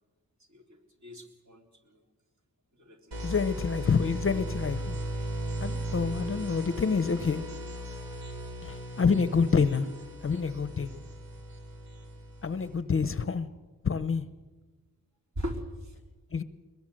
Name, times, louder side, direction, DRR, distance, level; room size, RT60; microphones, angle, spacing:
voice 1, 0.5-1.6 2.8-3.3 15.4-15.9, equal, 50° right, 2 dB, 3.8 m, -39 dB
sound 1, 3.1-12.8, right 1 dB, 70° right, 4.3 m, -37 dB
voice 2, 3.2-5.0 5.6-7.4 8.6-9.9 10.2-10.9 12.4-13.5 13.8-14.2 16.3-16.4, left 5 dB, 35° left, 13 dB, 0.8 m, -27 dB
21.5 x 21.5 x 7.8 m, 1.3 s
wide cardioid pair, 125°, 36 cm